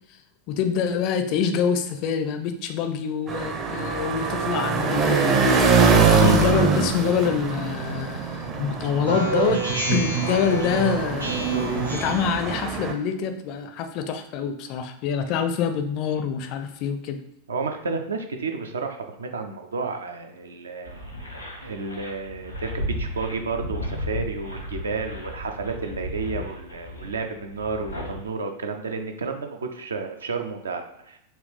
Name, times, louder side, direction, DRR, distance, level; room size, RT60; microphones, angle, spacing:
voice 1, 0.5-9.6 9.9-11.3 11.9-17.2, left 7 dB, 40° left, 7 dB, 0.4 m, -26 dB
sound 1, 3.3-12.9, right 5 dB, 25° right, 0.6 m, -23 dB
Speech synthesizer, 9.0-12.4, right 4 dB, 85° right, 1.0 m, -27 dB
voice 2, 17.5-21.1 21.6-31.2, right 4 dB, 70° right, 5 dB, 0.5 m, -31 dB
sound 2, 20.8-28.2, left 1 dB, 90° left, 0.9 m, -34 dB
4.2 x 2.3 x 3.3 m, 0.80 s
figure-of-eight pair, 90°, 0 cm